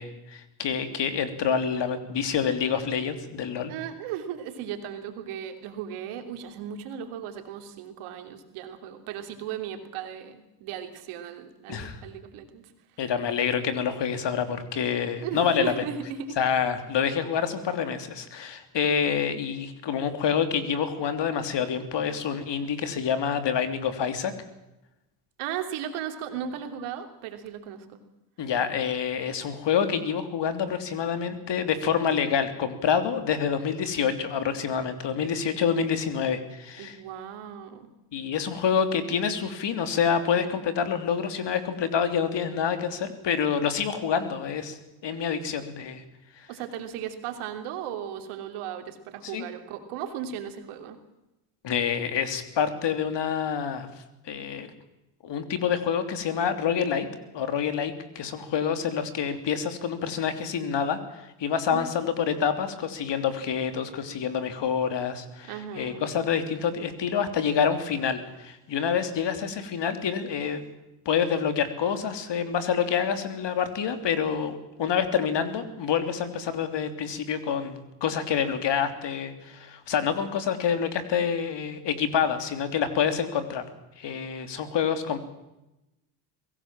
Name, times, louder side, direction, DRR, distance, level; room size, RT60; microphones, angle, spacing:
voice 1, 0.0-3.7 11.7-12.0 13.0-15.8 16.4-24.3 28.4-37.0 38.1-46.0 46.4-46.5 49.2-49.5 51.6-53.9 54.2-54.7 55.2-57.1 57.3-70.6 71.0-83.6 84.0-85.2, left 7 dB, 55° left, 9 dB, 3.2 m, -27 dB
voice 2, 3.7-12.7 15.2-16.4 25.4-28.0 36.8-37.9 46.5-51.0 61.7-61.9 65.5-66.1, right 9 dB, 80° right, 6 dB, 3.2 m, -36 dB
23.5 x 17.0 x 7.5 m, 0.94 s
supercardioid pair, 80°, 49 cm